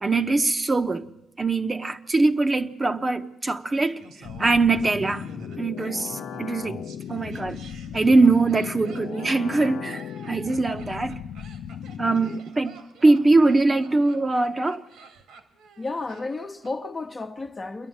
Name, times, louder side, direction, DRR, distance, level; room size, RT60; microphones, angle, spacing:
voice 1, 0.0-1.1 1.4-4.0 4.4-5.2 5.6-6.8 7.1-7.6 7.9-11.2 12.0-14.8, right 3 dB, 25° right, 1.1 m, -22 dB
Laughter, 3.7-16.7 17.0-17.1, right 4 dB, 85° right, 2.8 m, -47 dB
sound 1, 4.2-12.4, left 9 dB, 80° left, 0.8 m, -37 dB
voice 2, 15.8-17.9, left 3 dB, 25° left, 1.2 m, -32 dB
27.0 x 11.0 x 8.8 m
cardioid pair, 90°, 0 cm